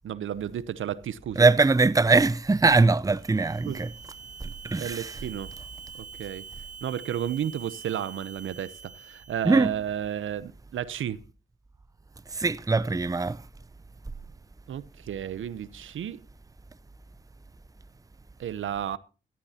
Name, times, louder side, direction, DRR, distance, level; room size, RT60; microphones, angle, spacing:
voice 1, 0.0-1.5 3.7-3.8 4.8-5.5 5.9-6.4 6.8-11.2 14.7-16.2 18.4-19.0, right 10 dB, 75° right, 0.8 m, -32 dB
voice 2, 1.4-3.9 4.6-5.1 9.5-9.7 12.4-13.4, right 3 dB, 15° right, 0.6 m, -21 dB
sound 1, 3.1-9.7, right 6 dB, 55° right, 7.1 m, -45 dB
16.5 x 13.0 x 2.9 m
supercardioid pair, 40°, 21 cm